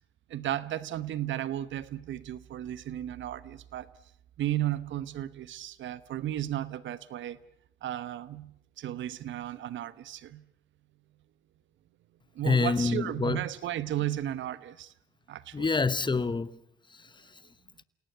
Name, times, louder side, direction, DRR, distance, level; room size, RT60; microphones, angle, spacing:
voice 1, 0.3-3.9 4.4-7.4 7.8-10.4 12.3-14.9 15.3-15.7, right 12 dB, 75° right, 1.1 m, -34 dB
voice 2, 12.4-13.4 15.5-16.6 16.9-17.4, left 4 dB, 25° left, 1.1 m, -27 dB
28.5 x 18.0 x 8.1 m
cardioid pair, 70°, 20 cm